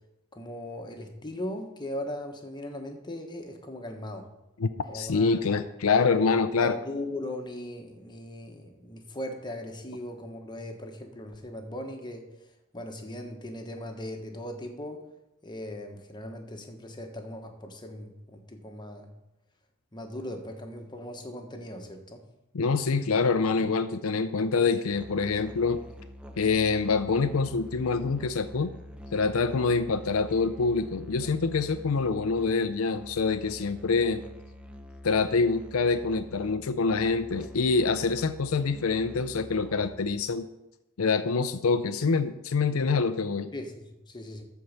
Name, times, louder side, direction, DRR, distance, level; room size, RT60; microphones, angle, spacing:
voice 1, 0.3-4.3 4.9-5.6 6.6-12.2 12.7-15.0 15.4-19.1 19.9-22.2 43.5-44.4, left 1 dB, 20° left, 3 dB, 1.3 m, -39 dB
voice 2, 4.6-6.8 22.5-25.8 26.4-28.7 29.1-34.2 35.0-40.5 41.0-43.5, left 4 dB, 85° left, 9 dB, 0.5 m, -26 dB
Musical instrument, 24.9-40.2, left 1 dB, 5° right, 0.8 m, -46 dB
13.5 x 4.7 x 6.7 m, 0.91 s
head